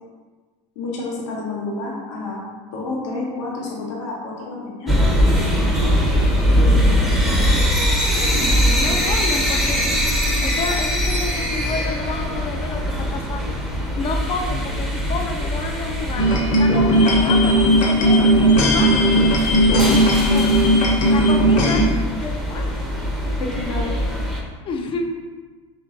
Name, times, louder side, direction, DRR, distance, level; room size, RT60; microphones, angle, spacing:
voice 1, 0.8-2.4 2.7-5.0 19.7-19.8 23.4-23.9, left 3 dB, 85° left, -3 dB, 1.0 m, -29 dB
sound 1, 4.9-24.4, equal, ahead, 0.7 m, -21 dB
voice 2, 7.8-8.5 8.8-9.8 10.4-13.6 13.9-16.3 16.6-19.0 19.8-20.5 21.1-21.8 22.2-22.8 24.6-25.2, left 4 dB, 35° left, 4 dB, 0.5 m, -30 dB
sound 2, 16.2-21.8, equal, 55° left, 1.0 m, -16 dB
3.3 x 3.0 x 3.8 m, 1.4 s
supercardioid pair, 110°, 15 cm